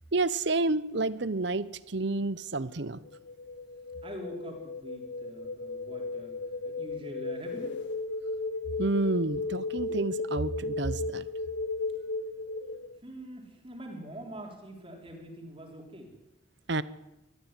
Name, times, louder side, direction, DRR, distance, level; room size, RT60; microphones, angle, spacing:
voice 1, 0.1-3.0 8.8-11.3 16.7-16.8, right 2 dB, 55° right, 16 dB, 0.9 m, -29 dB
sound 1, 3.1-13.0, left 3 dB, 60° left, 0.7 m, -35 dB
voice 2, 4.0-7.8 13.0-16.1, equal, 25° right, 0 dB, 3.9 m, -44 dB
20.0 x 14.5 x 9.8 m, 0.96 s
head